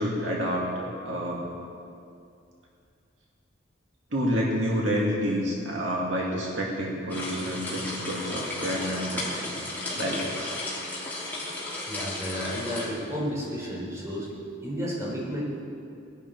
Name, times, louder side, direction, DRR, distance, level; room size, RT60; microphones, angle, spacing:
voice 1, 0.0-1.5 4.1-9.7 9.9-10.5, equal, 65° right, -3 dB, 2.3 m, -29 dB
sound 1, 7.1-12.9, left 2 dB, 10° left, 3.4 m, -34 dB
voice 2, 11.9-14.3 14.6-15.4, equal, 15° right, -6 dB, 4.2 m, -32 dB
20.0 x 11.5 x 4.6 m, 2.5 s
head